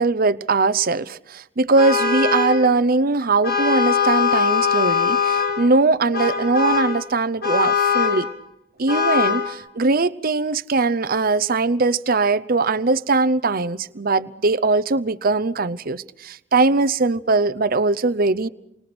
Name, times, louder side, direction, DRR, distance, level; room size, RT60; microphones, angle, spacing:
voice 1, 0.0-8.3 8.8-18.5, right 3 dB, 50° right, 0.8 m, -20 dB
Vehicle horn car horn honking, 1.8-2.6 3.4-5.6 6.1-7.0 7.4-8.3 8.9-9.5, left 6 dB, 60° left, 7.3 m, -21 dB
29.5 x 24.5 x 6.2 m
head